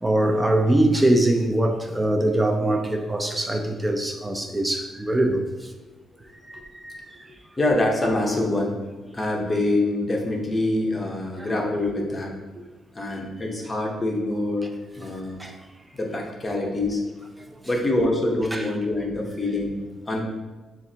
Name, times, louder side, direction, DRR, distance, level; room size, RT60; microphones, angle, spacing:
voice 1, 0.0-5.4 6.4-7.1 11.4-11.5 15.4-15.5 18.5-18.7, right 1 dB, 10° right, 4 dB, 0.5 m, -22 dB
voice 2, 7.6-8.8 9.1-12.3 12.9-14.7 15.0-15.4 15.9-17.0 17.7-20.2, left 2 dB, 20° left, 0 dB, 0.8 m, -25 dB
7.0 x 2.5 x 2.8 m, 1.2 s
cardioid pair, 125°, 0 cm